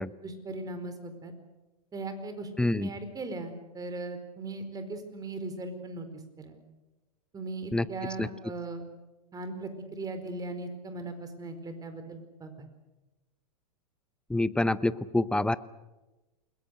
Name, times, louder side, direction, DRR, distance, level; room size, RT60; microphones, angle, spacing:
voice 1, 0.2-1.3 1.9-6.6 7.3-8.8 9.3-12.7, right 2 dB, 20° right, 8 dB, 4.6 m, -38 dB
voice 2, 2.6-2.9 7.7-7.9 8.2-8.3 14.3-15.6, left 2 dB, 5° left, 16 dB, 0.8 m, -26 dB
29.0 x 21.5 x 6.6 m, 1.1 s
hypercardioid pair, 110°, 20 cm